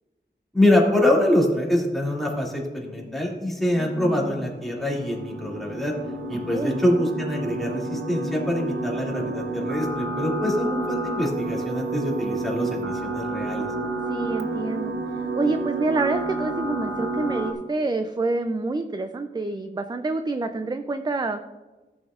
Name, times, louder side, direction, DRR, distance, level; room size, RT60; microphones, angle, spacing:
voice 1, 0.5-5.9 6.3-13.7, left 1 dB, ahead, -3 dB, 2.4 m, -24 dB
sound 1, 2.8-17.5, right 2 dB, 90° right, 0.8 m, -30 dB
voice 2, 3.7-4.4 6.3-6.8 14.1-15.0 15.4-21.4, right 3 dB, 20° right, 8 dB, 0.4 m, -27 dB
14.5 x 7.1 x 2.4 m, 1.2 s
wide cardioid pair, 75°, 19 cm